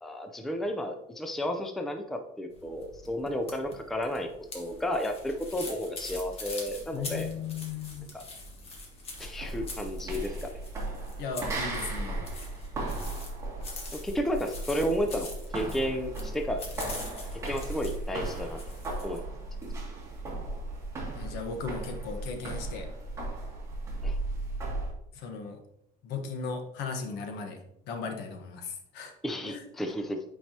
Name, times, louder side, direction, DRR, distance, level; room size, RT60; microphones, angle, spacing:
voice 1, 0.0-7.3 8.1-8.2 9.2-10.6 13.9-16.7 16.9-17.0 17.4-18.6 19.0-19.2 24.0-24.2 29.2-30.2, equal, ahead, 5 dB, 0.4 m, -32 dB
sound 1, 2.5-19.2, left 2 dB, 35° left, 1.5 m, -44 dB
voice 2, 6.9-8.1 11.2-12.2 21.2-22.9 25.1-25.6 26.0-29.1 29.4-29.6, left 5 dB, 70° left, 4 dB, 1.2 m, -37 dB
sound 2, 9.1-24.9, right 2 dB, 15° right, 2.1 m, -36 dB
8.9 x 4.6 x 2.8 m, 0.79 s
cardioid pair, 160°, 18 cm